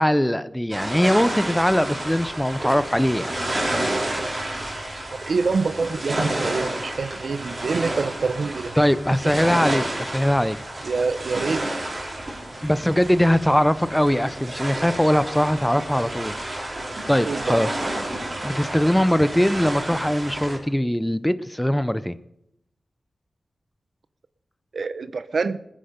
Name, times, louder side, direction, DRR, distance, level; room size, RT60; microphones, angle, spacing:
voice 1, 0.0-3.3 8.8-10.9 12.6-16.3 17.1-17.7 18.4-22.2, equal, 5° left, 14 dB, 0.6 m, -21 dB
sound 1, 0.7-20.6, right 1 dB, 40° right, 4.8 m, -30 dB
voice 2, 5.1-8.8 9.2-9.4 10.8-11.7 17.2-17.6 24.7-25.6, right 4 dB, 75° right, 13 dB, 0.7 m, -26 dB
20.0 x 10.0 x 5.2 m, 0.81 s
wide cardioid pair, 105°, 0 cm